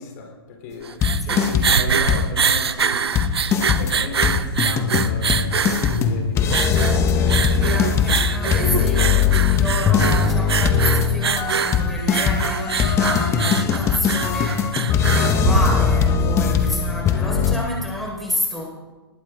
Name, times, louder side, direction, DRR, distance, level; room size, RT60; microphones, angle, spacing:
voice 1, 0.0-3.0 3.5-8.3, left 4 dB, 45° left, 2 dB, 3.8 m, -36 dB
sound 1, 0.7-16.2, right 6 dB, 80° right, 1.0 m, -24 dB
sound 2, 1.0-1.8 2.1-2.5 2.8-2.9 3.1-17.5, left 6 dB, 20° left, 1.5 m, -20 dB
voice 2, 1.2-1.7 7.6-18.7, left 1 dB, ahead, -4 dB, 4.8 m, -29 dB
20.0 x 14.0 x 3.8 m, 1.2 s
hypercardioid pair, 130°, 13 cm